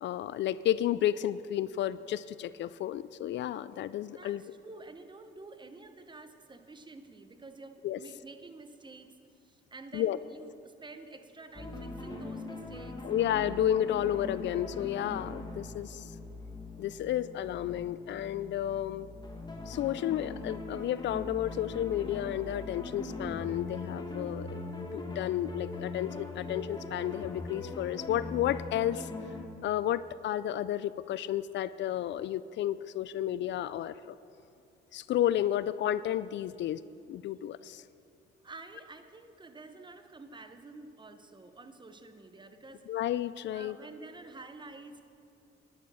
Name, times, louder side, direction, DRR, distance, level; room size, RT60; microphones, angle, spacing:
voice 1, 0.0-4.4 7.8-8.0 9.9-10.2 13.0-16.1 16.8-19.1 19.7-29.1 29.6-34.2 34.9-36.8 37.1-37.8 42.9-43.8, left 11 dB, 65° left, 16 dB, 0.4 m, -32 dB
voice 2, 4.1-9.1 9.4-13.0 38.4-42.8 43.5-45.0, right 3 dB, 25° right, 9 dB, 1.0 m, -49 dB
sound 1, 11.5-29.4, left 2 dB, 20° left, 1.8 m, -41 dB
10.5 x 10.5 x 6.3 m, 2.6 s
cardioid pair, 90°, 20 cm